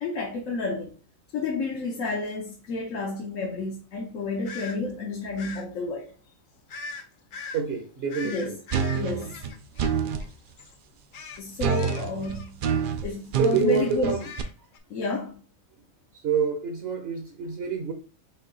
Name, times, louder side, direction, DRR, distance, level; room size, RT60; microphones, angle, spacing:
voice 1, 0.0-0.9 1.3-6.1 8.2-8.6 8.9-9.4 11.4-12.6 13.0-14.1 14.9-15.4, left 3 dB, 75° left, 1.2 m, -31 dB
sound 1, 4.4-4.8 5.4-5.7 6.7-7.0 7.3-7.6 8.1-10.3 10.6-10.8 11.1-13.0 13.3-13.5 13.8-14.8, left 4 dB, 60° left, 0.5 m, -41 dB
voice 2, 7.5-8.6 13.4-14.2 16.2-17.9, right 5 dB, 55° right, 1.0 m, -26 dB
sound 2, 8.7-10.3 11.6-14.4, right 7 dB, 70° right, 0.5 m, -27 dB
5.6 x 2.3 x 3.9 m
omnidirectional pair, 1.4 m